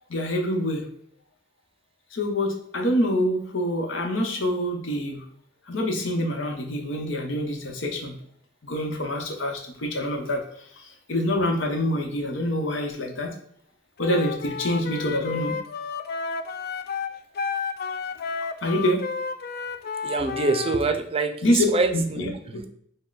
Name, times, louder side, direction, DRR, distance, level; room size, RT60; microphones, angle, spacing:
voice 1, 0.1-0.8 2.1-5.2 5.7-8.1 8.6-10.4 11.1-13.3 14.0-15.5 18.6-19.0 21.4-21.7 21.9-22.7, left 1 dB, 85° left, 2 dB, 0.9 m, -26 dB
Wind instrument woodwind instrument, 14.0-20.8, left 5 dB, 55° left, 0.3 m, -32 dB
voice 2, 20.0-22.3, right 3 dB, 30° right, 7 dB, 0.4 m, -25 dB
5.3 x 2.2 x 3.9 m, 0.65 s
head